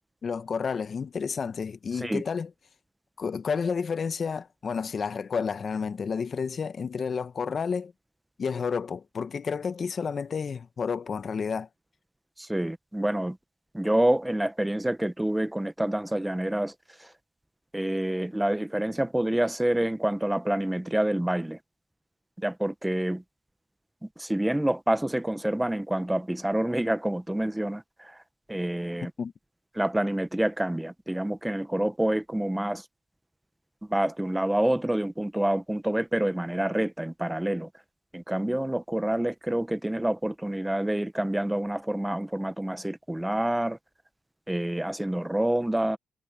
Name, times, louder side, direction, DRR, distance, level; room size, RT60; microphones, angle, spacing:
voice 1, 0.2-2.5 3.2-7.9 8.4-11.7 29.2-29.3, left 6 dB, 45° left, 1.0 m, -30 dB
voice 2, 12.4-13.4 13.7-16.7 17.0-17.1 17.7-21.6 22.4-23.2 24.0-28.2 28.5-29.1 29.7-32.8 33.9-37.7 38.1-43.8 44.5-46.0, right 1 dB, 5° right, 1.0 m, -27 dB
cardioid pair, 90°, 0 cm